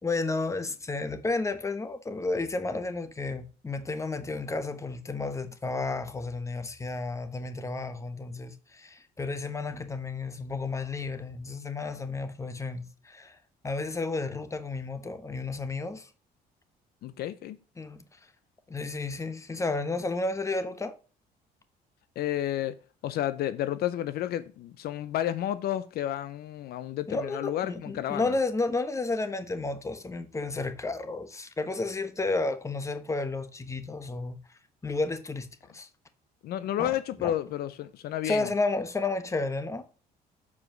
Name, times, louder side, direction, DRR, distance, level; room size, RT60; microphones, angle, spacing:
voice 1, 0.0-13.4 13.6-16.1 17.8-18.0 18.7-20.9 27.1-34.4 34.8-35.5 35.7-35.9 36.8-36.9 37.2-37.3 38.2-39.8, left 3 dB, 15° left, 1.1 m, -32 dB
voice 2, 17.0-17.6 22.2-22.8 23.0-28.3 36.4-38.5, left 12 dB, 70° left, 0.6 m, -31 dB
7.2 x 4.9 x 6.0 m
cardioid pair, 110°, 17 cm